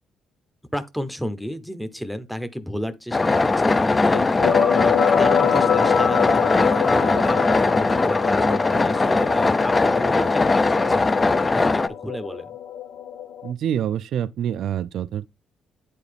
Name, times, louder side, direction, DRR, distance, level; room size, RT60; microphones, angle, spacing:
voice 1, 0.7-4.2 4.7-11.1 11.5-12.5, equal, ahead, 0.8 m, -32 dB
sound 1, 3.1-11.9, left 3 dB, 25° left, 0.5 m, -20 dB
sound 2, 4.1-13.5, left 8 dB, 80° left, 0.5 m, -25 dB
voice 2, 13.4-15.3, right 9 dB, 70° right, 0.3 m, -26 dB
9.3 x 4.1 x 3.4 m
cardioid pair, 90°, 0 cm